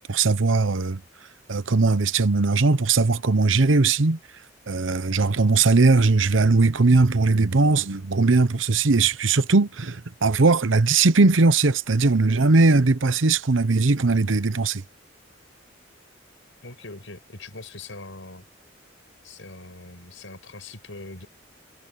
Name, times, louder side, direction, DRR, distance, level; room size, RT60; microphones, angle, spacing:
voice 1, 0.1-1.0 1.5-4.2 4.7-14.8, right 3 dB, 80° right, 0.9 m, -19 dB
voice 2, 16.6-18.4 19.2-21.3, left 3 dB, 80° left, 5.9 m, -41 dB
head